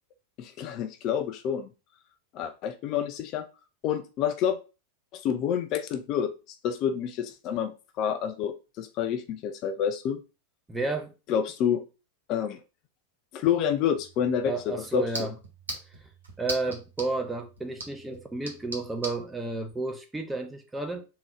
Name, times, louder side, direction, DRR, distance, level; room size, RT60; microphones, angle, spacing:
voice 1, 0.4-1.7 2.3-3.5 3.8-4.6 5.1-6.3 6.6-7.7 8.0-10.2 11.3-11.8 12.3-12.6 13.3-15.3 18.1-18.2, left 8 dB, 40° left, 0.4 m, -28 dB
voice 2, 10.7-11.1 14.4-15.3 16.4-21.1, right 3 dB, 10° right, 0.8 m, -32 dB
sound 1, 13.9-19.2, right 2 dB, 70° right, 1.2 m, -41 dB
3.7 x 3.0 x 4.8 m
figure-of-eight pair, 90°, 0 cm